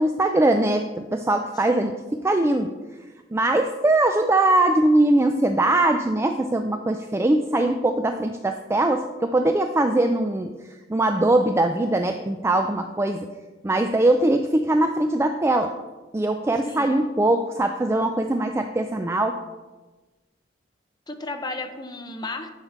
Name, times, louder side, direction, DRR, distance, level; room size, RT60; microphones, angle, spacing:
voice 1, 0.0-1.9 2.2-2.7 3.3-13.3 13.6-15.7 16.1-19.4, right 1 dB, 15° right, 6 dB, 0.4 m, -21 dB
voice 2, 1.7-2.0 16.6-17.0 21.1-22.5, left 2 dB, 25° left, 5 dB, 0.9 m, -34 dB
12.0 x 5.8 x 4.4 m, 1.2 s
head